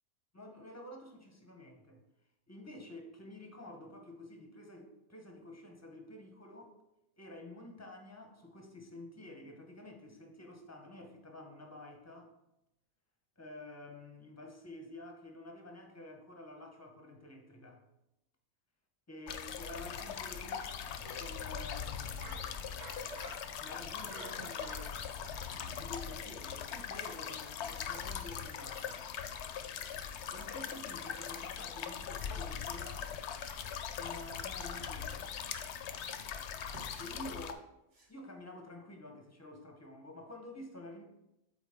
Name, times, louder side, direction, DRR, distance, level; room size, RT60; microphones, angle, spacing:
voice 1, 0.3-2.0 2.5-6.7 7.2-12.3 13.4-17.8 19.1-20.7 21.1-22.4 23.6-25.4 25.8-29.0 30.3-33.1 34.0-35.4 37.0-37.6 38.1-41.0, left 1 dB, 20° left, 3 dB, 0.4 m, -50 dB
sound 1, 19.3-37.5, left 8 dB, 65° left, 0.7 m, -41 dB
sound 2, 20.8-21.5 21.9-26.2, right 2 dB, 50° right, 1.4 m, -50 dB
sound 3, 36.0-38.7, right 1 dB, 70° right, 1.9 m, -61 dB
7.5 x 4.3 x 3.5 m, 0.89 s
omnidirectional pair, 1.5 m